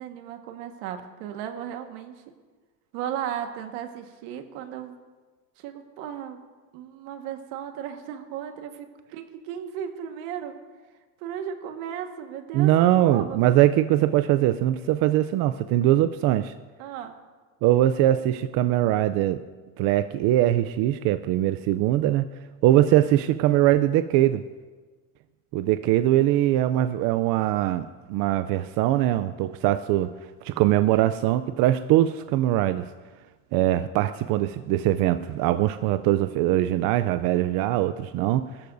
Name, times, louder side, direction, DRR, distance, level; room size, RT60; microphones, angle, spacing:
voice 1, 0.0-2.2 2.9-4.9 5.6-6.4 6.7-10.5 11.2-13.4 16.8-17.2, right 9 dB, 85° right, 5 dB, 1.6 m, -35 dB
voice 2, 12.5-16.5 17.6-19.4 19.8-22.3 22.6-24.4 25.5-30.1 30.4-32.9 33.5-38.5, right 13 dB, 60° right, 11 dB, 0.5 m, -22 dB
22.0 x 14.0 x 2.7 m, 1.4 s
cardioid pair, 150°, 41 cm